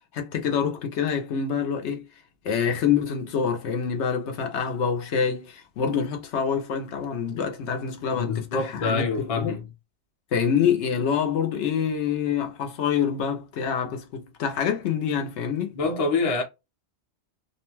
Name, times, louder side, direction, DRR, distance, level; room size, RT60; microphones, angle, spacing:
voice 1, 0.0-2.0 2.4-9.5 10.3-15.8, left 7 dB, 80° left, 0.9 m, -26 dB
voice 2, 8.1-9.6 15.7-16.4, left 4 dB, 35° left, 0.8 m, -26 dB
2.6 x 2.1 x 3.0 m
omnidirectional pair, 1.2 m